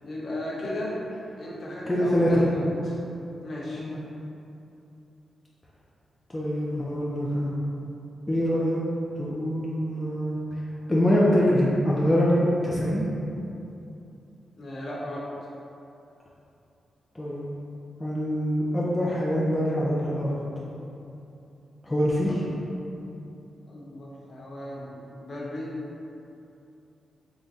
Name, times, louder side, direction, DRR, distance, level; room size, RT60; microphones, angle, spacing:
voice 1, 0.0-1.0 1.4-3.0 3.4-3.8 14.6-15.3 22.3-22.4 23.7-25.8, left 1 dB, 55° left, -5 dB, 0.8 m, -35 dB
voice 2, 1.9-2.4 3.8-4.0 6.3-7.5 8.3-8.8 9.2-10.4 10.9-13.1 17.2-17.5 18.0-20.3 21.8-22.4, equal, 15° left, -6 dB, 0.5 m, -24 dB
3.9 x 2.2 x 3.6 m, 2.8 s
cardioid pair, 100°, 0 cm